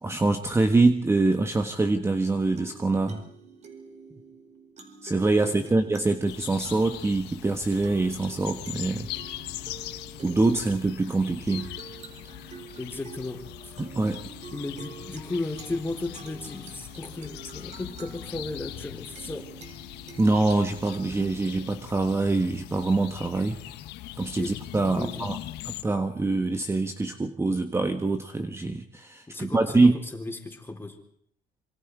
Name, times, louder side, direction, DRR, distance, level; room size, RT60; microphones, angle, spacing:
voice 1, 0.0-3.2 5.0-9.1 10.2-11.7 13.8-14.2 20.2-23.7 24.2-25.4 25.6-29.9, right 3 dB, 15° right, 6 dB, 1.4 m, -24 dB
sound 1, 2.0-21.8, right 5 dB, 40° right, 4.6 m, -47 dB
voice 2, 5.4-5.8 12.8-13.7 14.5-19.5 24.4-24.6 24.9-25.3 29.3-31.0, left 2 dB, 15° left, 4 dB, 4.1 m, -35 dB
sound 2, 6.3-25.8, left 14 dB, 90° left, 1.3 m, -41 dB
26.5 x 24.5 x 4.9 m, 0.66 s
cardioid pair, 110°, 17 cm